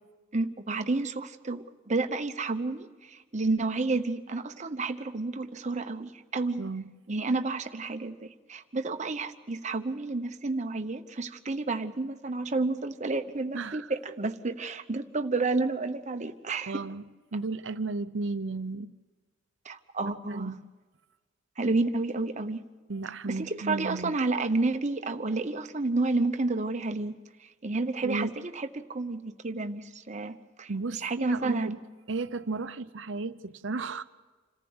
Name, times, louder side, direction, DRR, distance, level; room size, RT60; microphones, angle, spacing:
voice 1, 0.3-6.6 7.1-16.8 19.6-20.5 21.6-22.6 23.3-27.2 27.4-31.8, right 3 dB, 35° right, 1.0 m, -30 dB
voice 2, 6.6-6.9 13.5-13.9 16.7-17.0 17.3-18.9 20.0-20.7 22.9-24.1 28.0-28.4 30.7-31.8 32.1-34.0, right 3 dB, 70° right, 0.8 m, -34 dB
27.0 x 14.5 x 8.0 m
head